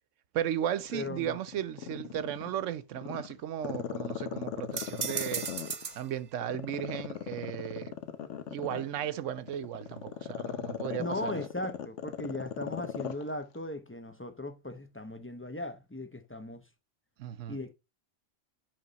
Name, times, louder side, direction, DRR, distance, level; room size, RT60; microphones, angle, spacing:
voice 1, 0.3-5.5 5.9-7.9 8.5-11.4 17.2-17.6, right 10 dB, 90° right, 1.0 m, -35 dB
Growling, 0.8-2.6 3.0-6.0 6.4-13.2 13.5-13.6, left 9 dB, 80° left, 1.2 m, -38 dB
voice 2, 0.9-1.4 11.0-16.6 17.5-17.7, left 1 dB, 15° left, 0.5 m, -38 dB
sound 1, 4.7-6.1, right 6 dB, 40° right, 0.8 m, -35 dB
10.5 x 3.6 x 4.0 m
omnidirectional pair, 1.2 m